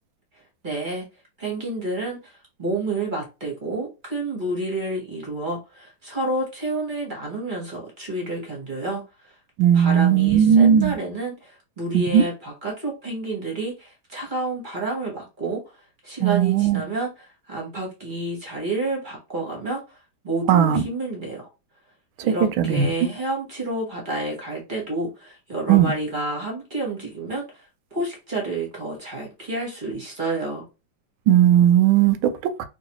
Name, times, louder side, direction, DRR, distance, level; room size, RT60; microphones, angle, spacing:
voice 1, 0.6-1.0 1.4-9.3 9.7-15.6 16.0-20.0 20.2-21.5 22.2-27.4 27.9-30.6, right 2 dB, 30° right, 1.0 m, -29 dB
voice 2, 9.6-11.0 11.9-12.2 16.2-16.8 20.5-20.8 22.6-22.9 25.7-25.9 31.3-32.6, right 9 dB, 80° right, 1.3 m, -17 dB
3.0 x 3.0 x 3.0 m
omnidirectional pair, 2.2 m